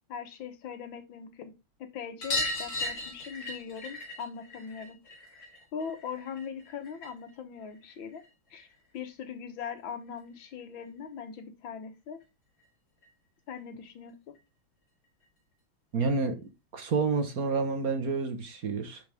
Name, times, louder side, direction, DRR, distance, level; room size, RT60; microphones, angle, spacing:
voice 1, 0.1-1.5 1.8-5.0 5.7-8.2 8.5-8.7 8.9-12.2 13.5-14.4, left 7 dB, 90° left, 2.0 m, -40 dB
sound 1, 2.2-7.3 7.6-8.7 10.1-10.2 10.4-10.5 10.8-10.9 12.2-12.3 12.6-12.7 13.0-13.1 14.3-14.4 15.2-15.3, left 2 dB, 50° left, 3.3 m, -37 dB
voice 2, 15.9-16.4 16.7-19.0, right 4 dB, 50° right, 1.5 m, -29 dB
11.0 x 4.8 x 3.4 m
omnidirectional pair, 2.1 m